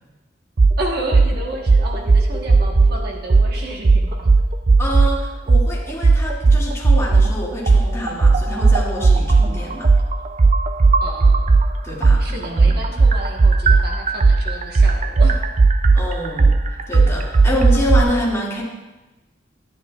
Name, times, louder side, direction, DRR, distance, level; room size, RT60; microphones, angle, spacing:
sound 1, 0.6-0.7 1.1-1.3 1.7-2.9 3.3-3.5 3.8-5.1 5.5-5.7 6.0-7.3 7.7-11.7 12.0-18.0, right 4 dB, 40° right, 0.4 m, -13 dB
voice 1, 0.8-4.3 11.0-11.6 12.2-15.4, right 2 dB, 60° right, -1 dB, 1.3 m, -31 dB
voice 2, 4.8-9.9 11.8-12.8 15.9-16.5 16.9-18.6, equal, 15° left, -6 dB, 2.4 m, -26 dB
12.0 x 10.0 x 2.4 m, 1.1 s
head